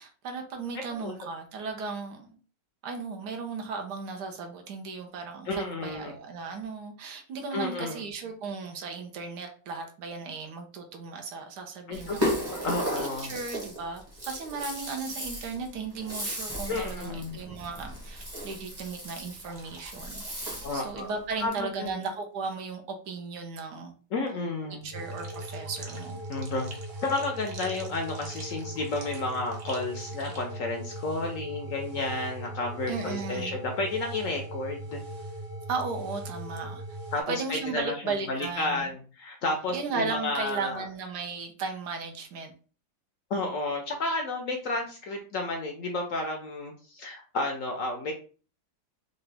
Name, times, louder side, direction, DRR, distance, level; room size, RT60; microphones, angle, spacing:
voice 1, 0.0-2.4 2.8-12.7 13.0-24.0 24.8-26.2 32.9-33.5 35.7-37.0 37.3-38.9 39.7-42.5, right 4 dB, 75° right, 4 dB, 1.3 m, -36 dB
voice 2, 5.5-6.1 7.5-8.0 11.9-13.3 16.7-17.4 20.6-21.1 21.4-22.0 24.1-24.9 26.3-26.7 27.0-35.0 37.1-40.9 43.3-48.1, left 2 dB, 65° left, 2 dB, 0.8 m, -32 dB
Rattle (instrument), 11.9-20.9, equal, 20° right, 0.8 m, -35 dB
sound 1, 19.5-21.2 21.5-21.7 25.1-30.6, right 3 dB, 55° right, 1.0 m, -48 dB
sound 2, 24.9-37.2, right 1 dB, 90° right, 1.9 m, -39 dB
3.9 x 2.3 x 3.3 m, 0.39 s
omnidirectional pair, 1.9 m